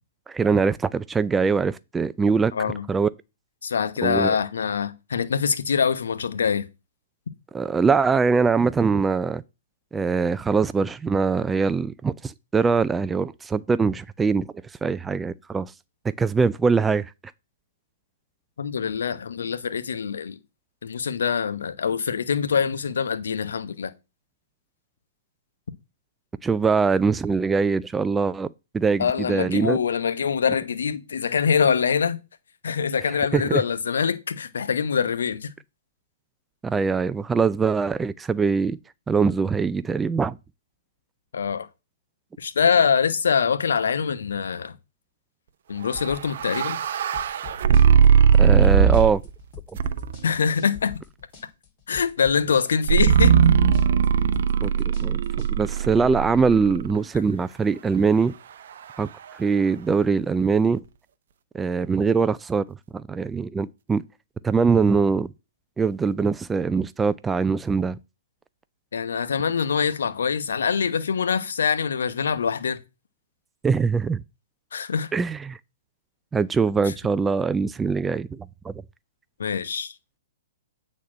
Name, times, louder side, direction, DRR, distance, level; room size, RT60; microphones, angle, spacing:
voice 1, 0.3-2.5 2.9-3.1 4.0-4.4 7.5-9.4 9.9-14.4 14.8-15.7 16.2-17.1 26.4-28.5 28.7-29.8 33.0-33.6 36.6-38.8 39.1-40.4 48.4-49.2 49.7-49.8 54.6-58.3 59.0-60.8 61.5-64.0 64.4-65.3 65.8-68.0 73.6-74.2 75.1-75.6 76.3-78.7, right 5 dB, 10° right, 0.4 m, -22 dB
voice 2, 2.5-2.8 3.6-6.7 18.6-20.4 20.8-23.9 29.0-32.2 32.6-35.5 41.3-41.7 42.4-44.7 45.7-46.8 50.2-50.9 51.9-53.3 68.9-72.8 74.7-75.1 79.4-79.9, left 6 dB, 70° left, 1.1 m, -24 dB
sound 1, 45.9-55.5, left 11 dB, 40° left, 3.4 m, -43 dB
sound 2, 46.0-49.3 49.8-50.3 52.9-57.0, right 7 dB, 55° right, 0.6 m, -19 dB
8.4 x 4.2 x 6.3 m
figure-of-eight pair, 120°, 0 cm